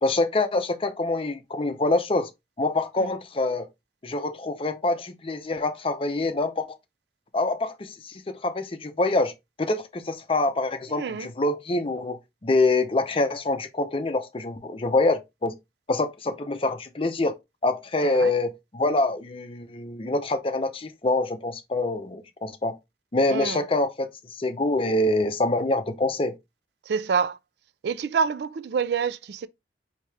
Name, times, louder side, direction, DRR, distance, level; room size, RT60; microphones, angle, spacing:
voice 1, 0.0-2.3 2.6-3.7 4.0-6.8 7.3-9.3 9.6-15.5 15.9-17.3 17.6-22.8 23.1-26.3, left 2 dB, 30° left, 0.6 m, -25 dB
voice 2, 10.9-11.3 18.0-18.3 23.3-23.6 26.9-27.4 27.8-29.5, right 6 dB, 65° right, 0.3 m, -27 dB
4.8 x 2.8 x 3.4 m
head